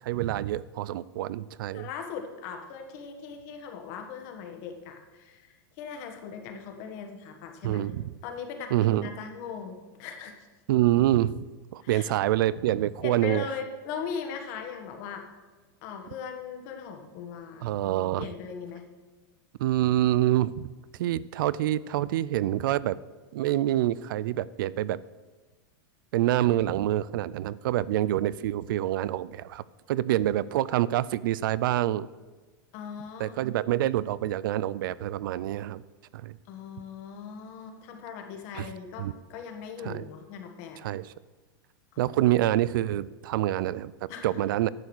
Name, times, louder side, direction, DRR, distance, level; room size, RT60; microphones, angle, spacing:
voice 1, 0.0-1.9 7.6-8.1 8.7-9.1 10.7-11.4 11.7-13.5 17.6-18.3 19.6-20.7 21.0-23.0 23.3-25.0 26.1-32.1 33.2-35.8 36.1-36.4 38.5-38.7 39.0-39.1 39.8-40.1 40.8-41.1 42.0-44.7, right 14 dB, 65° right, 19 dB, 0.4 m, -26 dB
voice 2, 1.7-8.0 8.2-10.3 11.8-12.1 13.0-15.2 15.8-17.7 18.2-18.8 32.7-33.5 36.5-40.8 41.9-42.1 44.1-44.4, left 6 dB, 45° left, 4 dB, 1.6 m, -39 dB
10.5 x 7.2 x 6.2 m, 1.3 s
supercardioid pair, 165°, 12 cm